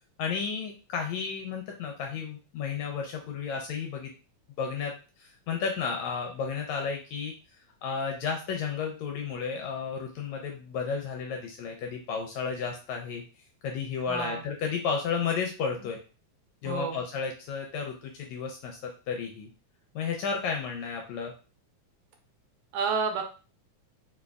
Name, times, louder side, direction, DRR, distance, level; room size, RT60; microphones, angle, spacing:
voice 1, 0.2-4.1 4.6-7.3 7.8-13.2 13.6-16.0 16.6-19.5 20.0-21.3, left 6 dB, 80° left, 2 dB, 1.6 m, -32 dB
voice 2, 14.1-14.4 16.6-17.0 22.7-23.2, right 5 dB, 85° right, 4 dB, 2.1 m, -29 dB
5.0 x 2.2 x 2.3 m, 0.34 s
omnidirectional pair, 3.5 m